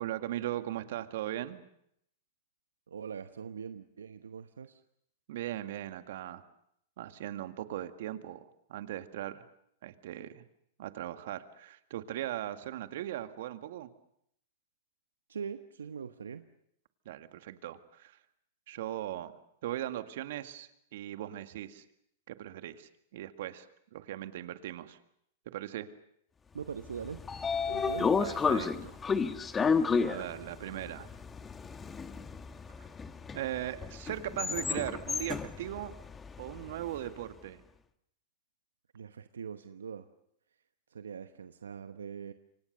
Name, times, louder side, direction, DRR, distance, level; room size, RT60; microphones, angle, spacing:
voice 1, 0.0-1.6 5.3-6.4 7.0-9.5 9.8-10.4 10.8-13.9 17.1-18.2 18.7-19.4 19.6-21.8 22.3-23.7 23.9-25.0 25.5-25.9 28.2-29.0 30.0-31.1 32.8-32.9 33.3-36.0 36.4-37.6, right 13 dB, 65° right, 10 dB, 2.0 m, -39 dB
voice 2, 2.9-4.8 15.3-16.4 26.5-27.2 27.6-28.1 38.9-40.0 40.9-42.3, right 7 dB, 90° right, 10 dB, 1.0 m, -42 dB
Train / Sliding door, 26.8-37.0, left 5 dB, 20° left, 1.5 m, -32 dB
28.0 x 25.0 x 6.8 m, 0.73 s
hypercardioid pair, 115°, 0 cm